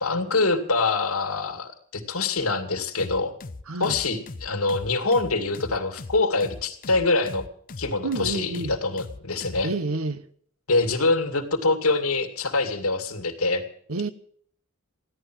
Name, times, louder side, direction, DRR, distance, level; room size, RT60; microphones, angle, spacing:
voice 1, 0.0-3.3 3.8-7.5 7.8-9.7 10.7-13.6, left 3 dB, 80° left, 2.4 m, -25 dB
sound 1, 3.0-9.7, left 3 dB, 40° left, 0.7 m, -39 dB
voice 2, 3.7-4.0 8.0-8.8 9.6-10.3 13.9-14.1, right 3 dB, 80° right, 1.0 m, -29 dB
16.0 x 11.5 x 6.2 m
head